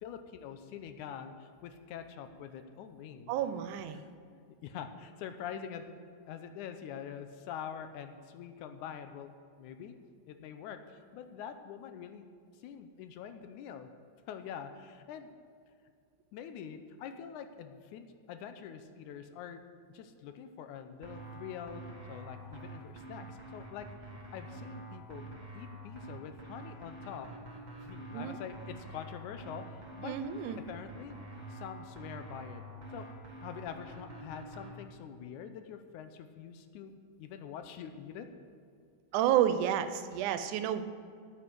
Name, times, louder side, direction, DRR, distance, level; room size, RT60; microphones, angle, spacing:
voice 1, 0.0-3.3 3.9-4.0 4.6-6.0 6.3-9.3 9.6-10.0 10.3-12.3 12.5-13.9 14.3-15.3 16.3-19.6 19.9-21.8 22.1-23.9 24.3-25.2 25.5-27.3 27.8-30.1 30.7-31.2 31.5-32.6 32.9-33.1 33.4-36.9 37.2-38.3, left 8 dB, 85° left, 8 dB, 2.2 m, -45 dB
voice 2, 3.3-4.0 28.1-28.4 30.0-30.6 39.1-40.8, right 10 dB, 85° right, 11 dB, 2.2 m, -30 dB
sound 1, 21.0-34.7, right 2 dB, 25° right, 1.0 m, -47 dB
9.6 x 8.1 x 7.7 m, 2.2 s
omnidirectional pair, 3.5 m